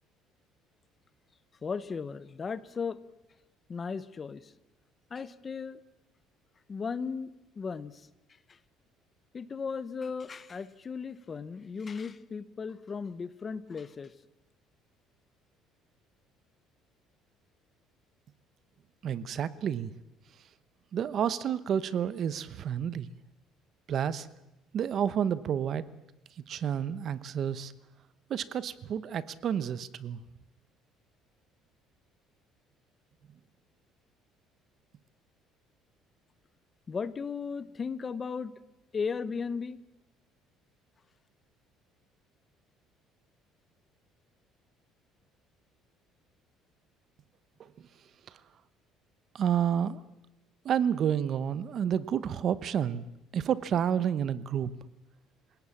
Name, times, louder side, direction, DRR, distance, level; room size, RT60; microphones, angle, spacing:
voice 1, 1.6-3.0 3.7-4.5 5.1-5.8 6.7-7.3 7.6-8.1 8.5-8.6 9.3-14.1 36.9-38.5 38.9-39.8, left 5 dB, 25° left, 16 dB, 0.8 m, -36 dB
voice 2, 19.0-19.9 20.9-23.1 23.9-24.3 24.7-25.8 26.5-27.7 28.3-30.2 49.3-50.0 50.6-53.1 53.3-54.7, right 8 dB, 40° right, 16 dB, 0.9 m, -30 dB
28.0 x 17.5 x 7.2 m, 0.93 s
cardioid pair, 160°, 0 cm